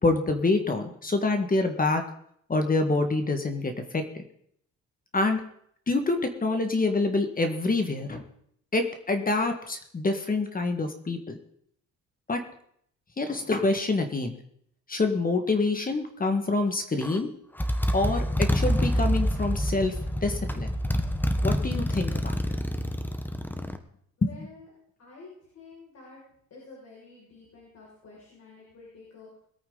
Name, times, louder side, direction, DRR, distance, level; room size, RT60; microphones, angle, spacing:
voice 1, 0.0-2.0 2.5-4.0 5.1-5.4 5.9-8.2 8.7-11.4 12.3-12.4 13.2-14.3 14.9-17.3 17.9-19.9 20.2-20.8 21.4-22.4 24.2-24.3, left 3 dB, 30° left, 6 dB, 1.9 m, -26 dB
Motorcycle, 17.0-17.2 17.6-23.8, equal, 5° left, 1.3 m, -27 dB
voice 2, 24.2-24.7 25.0-25.3 25.5-26.2 26.5-29.4, left 3 dB, 55° left, -5 dB, 6.2 m, -49 dB
21.5 x 8.7 x 4.0 m, 0.68 s
cardioid pair, 90°, 30 cm